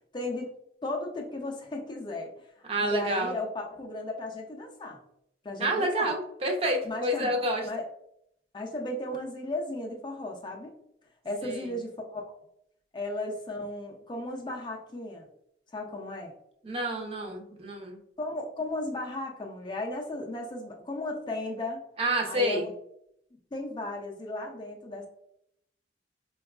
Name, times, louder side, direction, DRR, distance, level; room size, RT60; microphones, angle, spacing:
voice 1, 0.1-0.5 0.8-2.5 2.8-5.0 5.4-6.1 6.8-7.3 7.6-7.9 8.5-10.7 11.2-12.3 12.9-15.3 15.7-16.3 18.2-21.8 22.3-22.7 23.5-25.1, left 2 dB, 25° left, 1 dB, 0.4 m, -35 dB
voice 2, 2.7-3.3 5.6-7.6 11.4-11.6 16.6-18.0 22.0-22.7, right 1 dB, 35° right, 1 dB, 0.5 m, -28 dB
4.4 x 2.3 x 2.3 m, 0.75 s
head